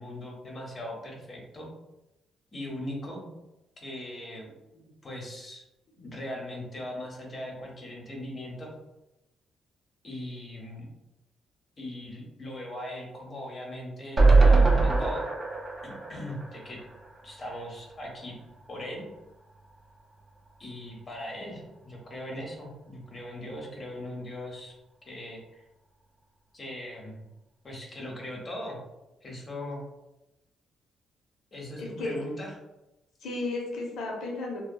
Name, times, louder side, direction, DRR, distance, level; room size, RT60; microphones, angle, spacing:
voice 1, 0.0-1.7 2.5-3.3 3.8-5.6 6.0-8.7 10.0-10.9 11.8-15.3 15.8-16.8 17.2-18.3 18.7-19.1 20.6-24.7 25.0-25.7 26.5-27.2 27.6-28.8 29.2-29.8 31.5-32.5, left 1 dB, 40° left, -1 dB, 0.7 m, -39 dB
sound 1, 14.2-17.4 17.8-17.9 18.1-18.2, right 3 dB, 30° right, 0.5 m, -22 dB
voice 2, 31.8-32.2 33.2-34.6, left 2 dB, 75° left, -1 dB, 0.6 m, -33 dB
2.6 x 2.2 x 2.2 m, 0.94 s
cardioid pair, 90°, 0 cm